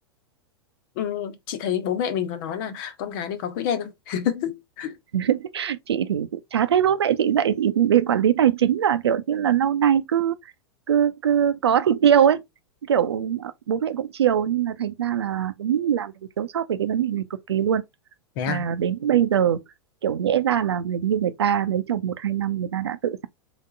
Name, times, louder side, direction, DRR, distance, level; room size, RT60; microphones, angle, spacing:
voice 1, 1.0-4.9 18.4-18.7, left 9 dB, 50° left, 1.1 m, -28 dB
voice 2, 5.1-10.3 10.9-12.4 12.9-17.8 18.5-19.6 20.0-23.3, right 9 dB, 75° right, 0.7 m, -22 dB
3.9 x 3.5 x 3.8 m
hypercardioid pair, 100°, 14 cm